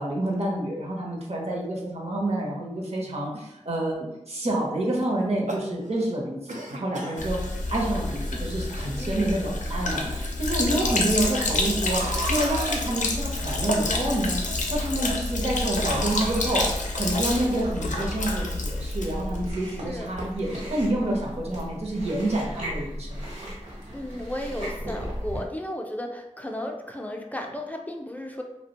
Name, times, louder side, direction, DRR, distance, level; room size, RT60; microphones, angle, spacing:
voice 1, 0.0-14.4 14.7-23.3, right 1 dB, 55° right, -2 dB, 0.7 m, -28 dB
sound 1, 5.2-6.1 6.5-7.2 8.1-8.2 8.4-8.5 9.4-9.5 11.9-13.0 15.8-17.0, right 1 dB, 90° right, 0.4 m, -34 dB
Sink (filling or washing), 7.2-19.5, left 2 dB, 85° left, 0.4 m, -28 dB
voice 2, 9.0-9.3 19.6-20.1 23.9-28.4, left 1 dB, 10° left, 2 dB, 0.4 m, -34 dB
Chewing mastication, 19.4-25.5, equal, 70° right, 1.1 m, -36 dB
2.4 x 2.1 x 2.8 m, 0.89 s
wide cardioid pair, 40°, 12 cm